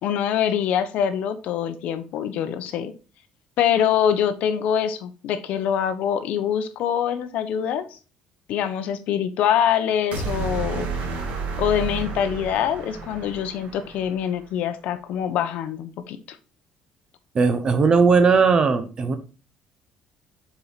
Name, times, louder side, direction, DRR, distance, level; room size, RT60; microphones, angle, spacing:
voice 1, 0.0-2.9 3.6-8.0 8.5-10.9 11.6-16.2, left 9 dB, 70° left, 0.8 m, -24 dB
sound 1, 10.1-14.4, right 4 dB, 75° right, 2.4 m, -31 dB
voice 2, 17.3-19.2, right 5 dB, 30° right, 0.9 m, -18 dB
6.9 x 4.6 x 4.0 m
cardioid pair, 140°, 3 cm